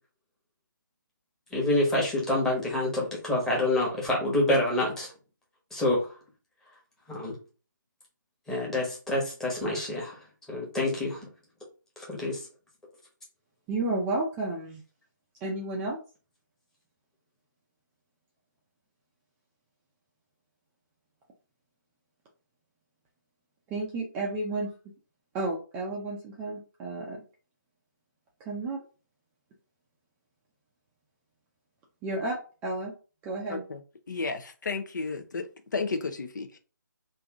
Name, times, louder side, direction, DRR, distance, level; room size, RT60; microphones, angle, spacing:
voice 1, 1.5-5.1 5.7-6.1 7.1-7.4 8.5-10.1 10.5-11.3 12.1-12.4, left 1 dB, 5° left, 1.1 m, -27 dB
voice 2, 13.7-14.8 15.4-16.0 23.7-24.7 25.3-27.2 28.4-28.8 32.0-32.9 33.2-33.6, right 2 dB, 10° right, 0.4 m, -32 dB
voice 3, 33.5-33.8 34.1-35.5 35.7-36.6, left 4 dB, 65° left, 0.6 m, -32 dB
3.5 x 2.6 x 3.5 m
figure-of-eight pair, 155°, 11 cm